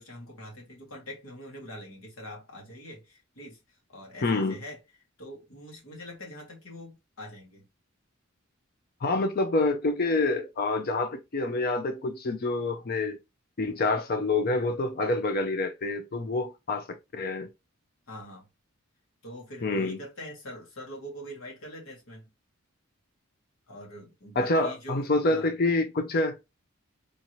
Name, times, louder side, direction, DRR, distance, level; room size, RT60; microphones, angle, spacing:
voice 1, 0.0-4.8 5.2-7.7 18.1-18.5 19.2-22.3 23.7-25.5, equal, 75° left, 1.7 m, -44 dB
voice 2, 4.2-4.6 9.0-13.2 13.6-16.9 17.1-17.5 19.6-20.0 24.4-26.4, left 2 dB, 45° left, 0.5 m, -27 dB
3.7 x 2.7 x 3.0 m
head